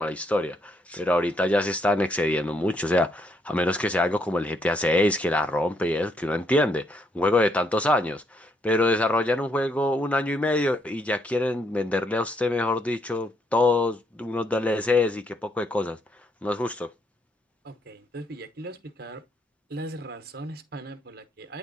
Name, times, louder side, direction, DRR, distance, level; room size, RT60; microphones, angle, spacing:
voice 1, 0.0-16.0 16.4-16.9, left 1 dB, 5° left, 0.3 m, -25 dB
voice 2, 17.6-19.2 19.7-21.6, right 2 dB, 55° right, 1.0 m, -38 dB
9.5 x 3.6 x 3.9 m
head